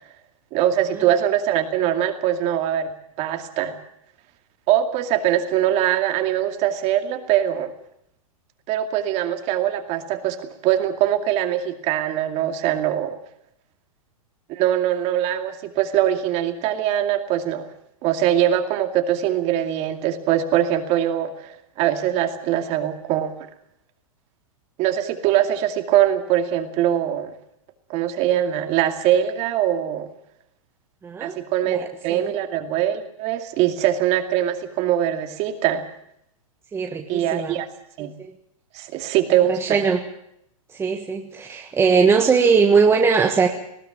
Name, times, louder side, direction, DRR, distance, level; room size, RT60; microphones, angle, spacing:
voice 1, 0.5-2.9 3.2-3.8 4.7-7.7 8.7-13.2 14.5-17.7 18.0-23.3 24.8-27.3 27.9-30.1 31.2-35.8 37.1-37.7 38.0-38.1 38.7-39.8, right 11 dB, 35° right, 7 dB, 2.4 m, -22 dB
voice 2, 31.0-31.3 31.7-32.3 36.7-37.6 38.0-38.3 39.3-40.0 40.7-43.5, right 5 dB, 15° right, 3 dB, 1.5 m, -20 dB
20.0 x 15.0 x 8.8 m, 0.75 s
hypercardioid pair, 135°, 18 cm